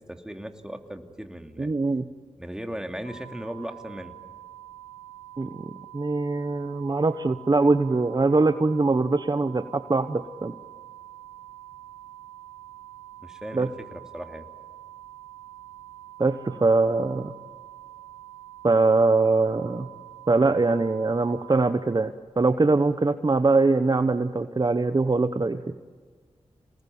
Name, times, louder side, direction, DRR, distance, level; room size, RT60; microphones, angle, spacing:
voice 1, 0.1-1.7 2.4-4.2 13.2-14.5, equal, 5° right, 5 dB, 2.6 m, -37 dB
voice 2, 1.6-2.1 5.4-5.5 5.9-10.5 13.5-13.7 16.2-17.3 18.6-19.9 20.3-25.6, right 3 dB, 35° right, 10 dB, 1.0 m, -22 dB
sound 1, 3.0-21.7, right 14 dB, 85° left, 3.3 m, -46 dB
26.5 x 19.5 x 9.5 m, 1.5 s
cardioid pair, 45°, 11 cm